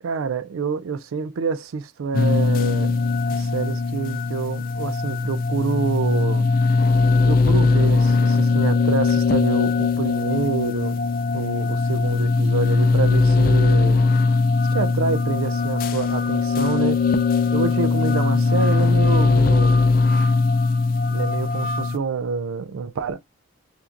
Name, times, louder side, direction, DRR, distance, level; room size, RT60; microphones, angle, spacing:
voice 1, 0.0-3.0 3.3-6.5 7.2-11.0 11.3-14.0 14.7-17.0 17.5-19.9 21.1-23.2, right 5 dB, 90° right, 0.4 m, -27 dB
sound 1, 2.1-22.0, left 4 dB, 45° left, 0.4 m, -20 dB
5.7 x 2.6 x 2.5 m
head